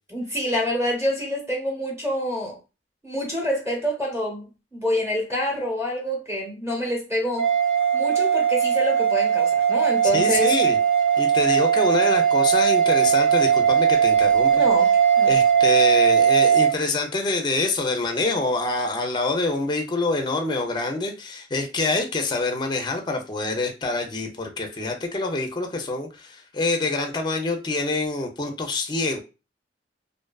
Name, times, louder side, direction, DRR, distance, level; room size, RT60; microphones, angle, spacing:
voice 1, 0.1-2.6 3.0-7.5 7.9-10.5 14.5-15.4, equal, 15° right, 0.9 m, -27 dB
sound 1, 7.4-16.7, right 8 dB, 70° right, 1.0 m, -19 dB
voice 2, 10.1-10.8 11.2-14.6 15.3-29.2, left 3 dB, 25° left, 0.4 m, -26 dB
2.5 x 2.3 x 2.2 m
head